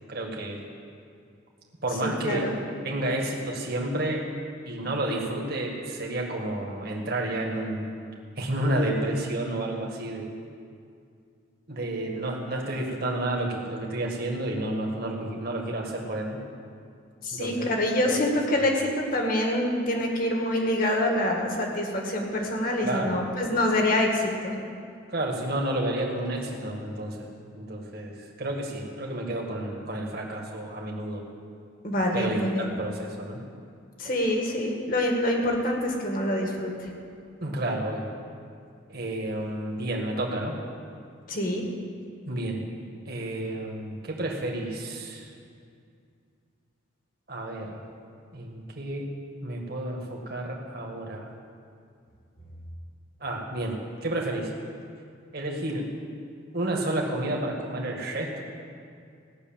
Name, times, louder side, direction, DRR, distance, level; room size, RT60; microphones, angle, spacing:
voice 1, 0.1-0.6 1.8-2.5 2.8-4.2 4.6-7.9 8.4-10.3 11.7-16.4 17.3-17.7 18.1-18.2 18.7-18.8 22.8-23.2 25.1-27.3 27.5-31.2 32.1-33.4 37.4-38.1 38.9-40.5 42.3-42.6 43.1-45.3 47.3-47.8 48.3-49.1 49.4-51.3 53.2-54.5 55.3-55.9 56.5-58.4, right 1 dB, 50° right, 0 dB, 1.9 m, -30 dB
voice 2, 2.0-2.5 17.2-24.6 31.8-32.7 34.0-36.7 41.3-41.6, left 1 dB, 45° left, 1 dB, 1.9 m, -26 dB
16.5 x 6.8 x 8.9 m, 2.3 s
head